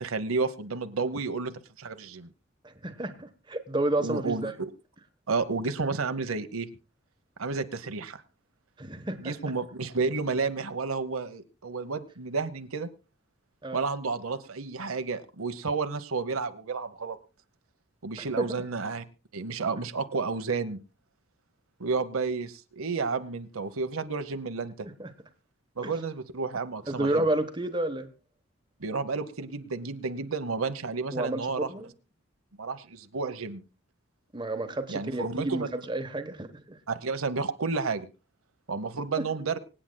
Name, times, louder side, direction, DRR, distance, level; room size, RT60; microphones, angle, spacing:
voice 1, 0.0-1.5 1.8-2.3 4.0-4.7 5.3-6.7 7.4-8.2 9.2-12.9 13.7-17.2 18.0-19.0 19.3-20.8 21.8-24.7 25.8-27.3 28.8-31.7 32.6-33.6 34.9-35.7 36.9-38.1 38.7-39.6, right 4 dB, 85° right, 9 dB, 0.9 m, -31 dB
voice 2, 2.6-4.5 8.8-9.3 13.6-13.8 18.2-18.6 24.8-25.1 25.8-25.9 26.9-28.1 31.1-31.9 34.3-36.8, right 1 dB, 20° right, 7 dB, 1.0 m, -31 dB
25.5 x 8.8 x 2.2 m, 0.32 s
head